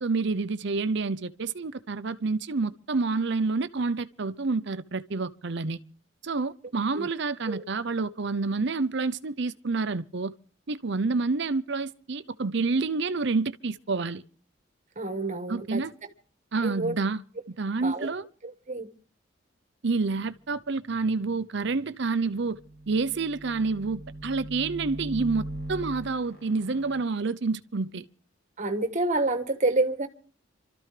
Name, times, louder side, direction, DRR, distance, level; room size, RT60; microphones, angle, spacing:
voice 1, 0.0-5.8 6.2-10.3 10.7-14.2 15.5-15.9 16.5-17.2 17.5-18.2 19.8-22.6 22.9-28.0, right 4 dB, 60° right, 0.7 m, -28 dB
voice 2, 15.0-15.8 16.6-16.9 17.8-18.1 18.4-18.9 28.6-30.1, right 2 dB, 35° right, 1.5 m, -28 dB
sound 1, 22.3-27.0, right 1 dB, 55° left, 6.6 m, -40 dB
28.0 x 13.5 x 3.3 m
head